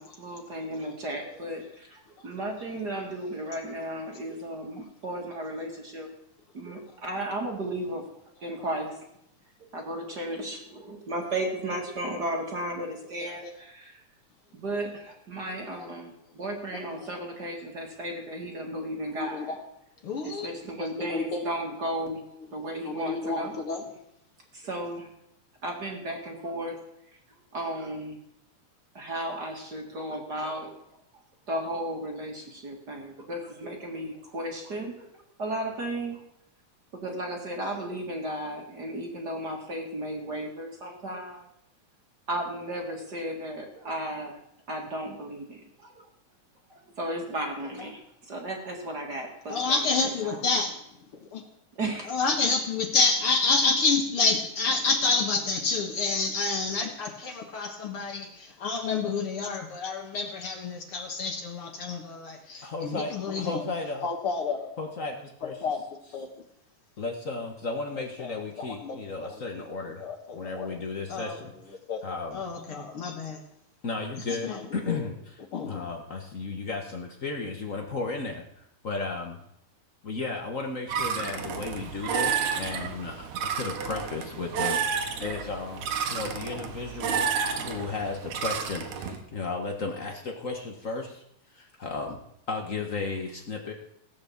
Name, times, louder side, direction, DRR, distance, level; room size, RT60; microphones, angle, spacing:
voice 1, 0.0-6.1 6.5-8.1 8.4-9.0 9.7-14.0 14.5-19.6 20.2-22.2 22.5-23.5 24.5-25.1 25.6-26.8 27.5-28.2 28.9-30.8 31.5-35.1 35.4-36.2 36.9-41.5 42.3-44.4 44.7-46.1 46.7-48.0 48.3-49.8 50.2-50.4 51.8-52.1, right 1 dB, 35° right, 1 dB, 2.1 m, -34 dB
voice 2, 16.7-17.1 19.2-19.6 20.0-21.5 22.8-23.8 49.5-50.8 51.2-51.4 52.1-63.6 64.0-64.7 65.4-65.8 66.1-66.3 68.2-70.8 71.1-71.5 71.9-72.0 72.3-73.4 74.2-75.1 75.5-75.8, left 4 dB, 55° left, 3 dB, 1.9 m, -29 dB
voice 3, 62.6-64.1 64.8-65.6 67.0-70.0 70.3-71.5 72.0-72.4 73.8-79.4 80.0-83.3 83.5-84.9 85.2-87.3 87.6-91.2 91.5-92.2 92.5-93.7, left 3 dB, 90° left, 2 dB, 0.7 m, -34 dB
sound 1, 80.9-89.2, right 7 dB, 75° right, 2.7 m, -31 dB
16.0 x 8.9 x 7.2 m, 0.75 s
omnidirectional pair, 3.6 m